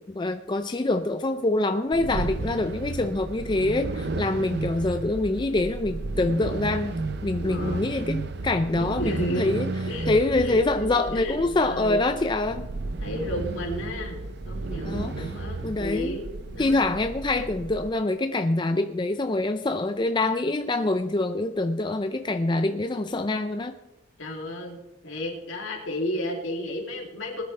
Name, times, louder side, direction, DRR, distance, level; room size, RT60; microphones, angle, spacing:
voice 1, 0.1-7.0 7.2-9.7 10.1-12.7 14.8-15.3 15.6-16.2 16.6-23.8, left 2 dB, 25° left, 7 dB, 0.4 m, -25 dB
sound 1, 1.9-17.9, right 3 dB, 55° right, 0.6 m, -33 dB
voice 2, 7.4-7.9 8.7-9.5 9.9-10.1 10.4-12.1 13.0-14.2 14.5-16.3 16.5-16.9 24.2-27.4, left 1 dB, 75° left, -1 dB, 2.7 m, -33 dB
20.0 x 10.0 x 3.3 m, 0.97 s
head